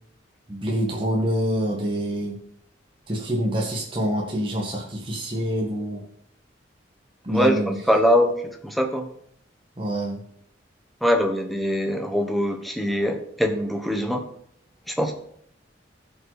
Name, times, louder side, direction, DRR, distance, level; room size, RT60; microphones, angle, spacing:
voice 1, 0.5-2.4 3.1-6.0 7.2-7.8 9.8-10.2, equal, 25° right, -3 dB, 1.8 m, -26 dB
voice 2, 7.3-8.3 8.6-9.1 11.0-14.2 14.9-15.1, equal, ahead, 3 dB, 1.3 m, -22 dB
15.5 x 5.9 x 4.1 m, 0.69 s
head